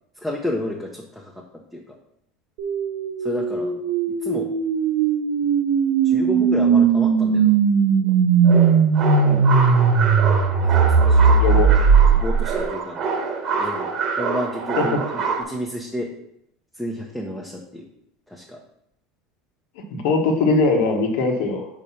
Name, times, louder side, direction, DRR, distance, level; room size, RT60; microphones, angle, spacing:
voice 1, 0.2-1.3 1.7-1.8 3.2-3.8 4.2-4.5 6.0-7.6 10.6-11.5 12.2-13.0 13.6-13.9 14.2-16.1 16.8-17.9 18.3-18.6, left 1 dB, 5° left, -1 dB, 0.8 m, -31 dB
sound 1, 2.6-12.6, right 5 dB, 65° right, 0.9 m, -18 dB
sound 2, 8.4-15.4, right 5 dB, 45° right, 1.2 m, -26 dB
voice 2, 11.4-11.8 14.8-14.9 19.9-21.7, left 3 dB, 75° left, 2 dB, 1.2 m, -21 dB
5.1 x 4.1 x 5.7 m, 0.77 s
supercardioid pair, 130°, 0 cm